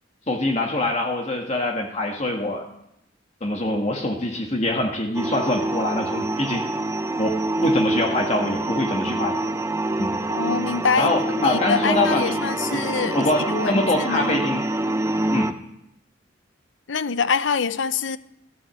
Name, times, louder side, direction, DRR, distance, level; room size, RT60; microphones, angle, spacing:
voice 1, 0.3-2.6 3.4-6.7 7.2-9.3 10.0-10.2 11.0-12.4 12.7-14.6 15.3-15.5, left 1 dB, 35° left, 1.6 m, -24 dB
sound 1, 5.1-15.5, right 2 dB, 15° right, 0.7 m, -26 dB
voice 2, 10.3-13.2 13.5-14.4 16.9-18.2, left 5 dB, 70° left, 0.7 m, -25 dB
13.5 x 13.5 x 7.6 m
head